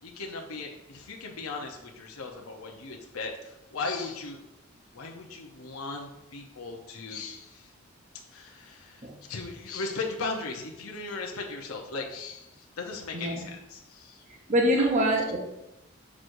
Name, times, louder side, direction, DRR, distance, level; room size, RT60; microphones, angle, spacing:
voice 1, 0.0-4.4 4.9-7.7 8.1-14.3 14.7-14.9 15.2-15.3, left 3 dB, 85° left, 1 dB, 0.8 m, -37 dB
voice 2, 14.5-15.4, equal, 35° right, 1 dB, 0.8 m, -24 dB
6.2 x 6.1 x 2.6 m, 0.87 s
head